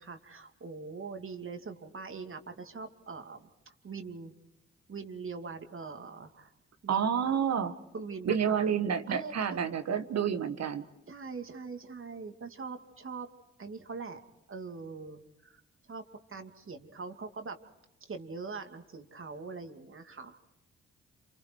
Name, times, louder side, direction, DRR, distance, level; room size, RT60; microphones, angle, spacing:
voice 1, 0.0-4.3 4.9-6.5 6.8-7.1 7.9-8.6 9.1-9.6 11.1-13.3 13.6-14.2 14.5-15.6 15.9-16.0 16.3-17.6 18.1-20.5, right 4 dB, 45° right, 6 dB, 2.6 m, -42 dB
voice 2, 6.9-7.7 8.2-10.8, right 7 dB, 60° right, 9 dB, 1.7 m, -29 dB
27.5 x 27.5 x 4.7 m, 0.91 s
hypercardioid pair, 40°, 30 cm